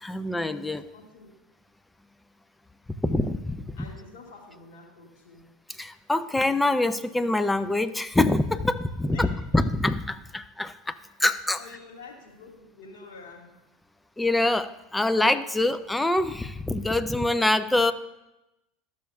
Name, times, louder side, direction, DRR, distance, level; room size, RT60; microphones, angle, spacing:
voice 1, 0.0-0.9 3.0-3.6 5.8-9.3 9.5-11.6 14.2-17.9, left 2 dB, 10° left, 12 dB, 0.5 m, -25 dB
voice 2, 0.7-1.3 3.7-5.5 9.1-9.3 11.6-13.6, left 4 dB, 70° left, -1 dB, 1.9 m, -47 dB
13.5 x 6.2 x 2.4 m, 0.94 s
hypercardioid pair, 80°, 0 cm